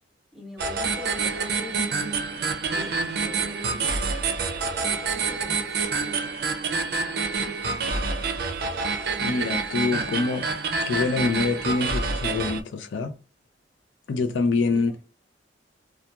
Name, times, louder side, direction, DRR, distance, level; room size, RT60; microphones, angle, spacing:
voice 1, 0.3-2.1 2.7-4.4 4.8-6.1 14.6-15.0, left 2 dB, ahead, 0.7 m, -43 dB
sound 1, 0.6-12.6, right 4 dB, 60° right, 0.5 m, -27 dB
voice 2, 9.2-10.5 10.9-13.2 14.1-14.9, left 4 dB, 80° left, 0.4 m, -25 dB
2.9 x 2.3 x 2.2 m
head